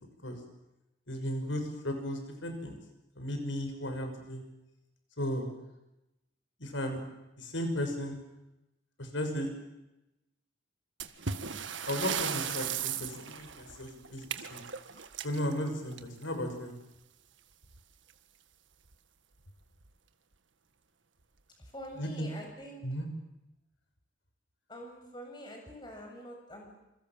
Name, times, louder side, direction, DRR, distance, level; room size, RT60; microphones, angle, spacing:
voice 1, 1.1-2.8 3.2-4.4 5.2-5.5 6.6-7.0 7.4-8.2 9.0-9.5 11.9-14.2 14.5-14.6 15.2-16.7 22.0-22.3 22.8-23.1, equal, 85° left, 5 dB, 6.3 m, -35 dB
sound 1, 11.0-16.4 17.6-17.8 18.1-18.2 18.8-18.9 19.6-19.9, right 7 dB, 80° right, 1.7 m, -37 dB
voice 2, 21.6-22.8 24.7-26.8, equal, 25° left, 2 dB, 7.3 m, -45 dB
27.5 x 26.5 x 7.6 m, 0.94 s
head